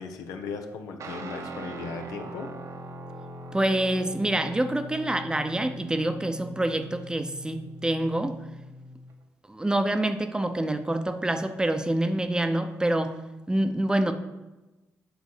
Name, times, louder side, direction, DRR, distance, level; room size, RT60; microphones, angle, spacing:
voice 1, 0.0-2.5, left 5 dB, 85° left, 5 dB, 1.0 m, -37 dB
Guitar, 1.0-9.1, right 1 dB, 60° right, 1.0 m, -41 dB
voice 2, 3.5-8.4 9.5-13.1 13.5-14.1, right 1 dB, 15° right, 9 dB, 0.7 m, -26 dB
8.1 x 4.0 x 6.5 m, 1.1 s
cardioid pair, 75°, 6 cm